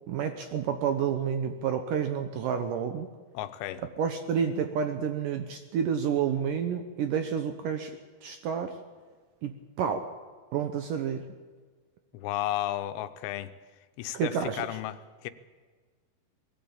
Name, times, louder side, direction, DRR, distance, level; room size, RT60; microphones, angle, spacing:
voice 1, 0.1-3.1 4.0-7.9 8.2-8.8 9.4-10.1 10.5-11.2 14.1-14.6, right 7 dB, 75° right, 8 dB, 2.0 m, -29 dB
voice 2, 3.3-3.8 12.1-13.5 14.0-15.3, left 13 dB, 90° left, 11 dB, 3.1 m, -33 dB
21.0 x 16.0 x 8.7 m, 1.5 s
omnidirectional pair, 4.9 m